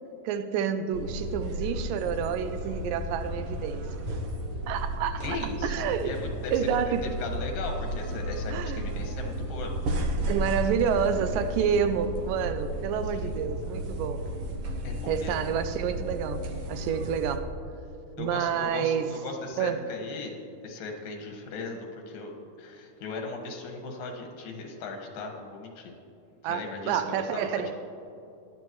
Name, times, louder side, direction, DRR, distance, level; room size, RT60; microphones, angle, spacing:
voice 1, 0.2-4.1 4.7-6.2 6.5-7.1 8.5-8.8 10.3-14.2 15.1-17.5 18.2-19.1 19.6-19.8 26.4-27.7, right 7 dB, 80° right, 10 dB, 2.2 m, -29 dB
Ambience medium store loop, 0.9-17.4, right 1 dB, 65° right, 1.4 m, -33 dB
voice 2, 5.2-6.7 7.0-9.7 13.0-13.4 14.8-15.4 18.2-20.4 20.6-26.0 26.4-27.7, left 3 dB, 85° left, 2 dB, 3.3 m, -38 dB
18.0 x 11.5 x 3.1 m, 2.7 s
omnidirectional pair, 3.9 m